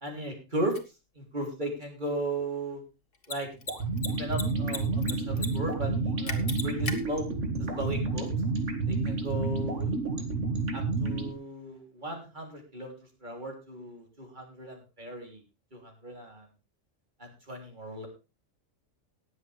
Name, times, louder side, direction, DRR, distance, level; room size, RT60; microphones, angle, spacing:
voice 1, 0.0-0.8 1.2-2.8 3.3-3.5 4.2-7.3 7.6-8.3 8.9-9.9 10.7-12.9 13.2-15.4 15.7-16.5 17.2-18.1, right 1 dB, 35° right, 2 dB, 3.5 m, -36 dB
Mechanisms, 0.7-0.8 3.1-3.3 3.6-3.7 4.0-4.8 5.0-5.5 5.7-5.8 6.3-6.9, left 4 dB, 45° left, 1.8 m, -34 dB
sound 1, 3.7-11.3, right 3 dB, 70° right, 2.3 m, -30 dB
19.0 x 8.0 x 3.4 m, 0.29 s
omnidirectional pair, 1.3 m